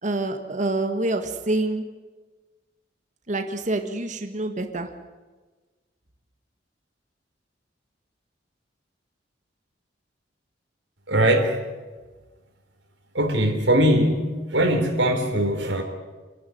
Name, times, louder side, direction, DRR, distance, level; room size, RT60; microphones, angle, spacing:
voice 1, 0.0-1.9 3.3-4.9, right 2 dB, 45° right, 6 dB, 1.7 m, -26 dB
voice 2, 11.1-11.5 13.1-15.8, right 1 dB, 80° right, 3 dB, 3.9 m, -21 dB
28.0 x 12.0 x 9.5 m, 1.3 s
head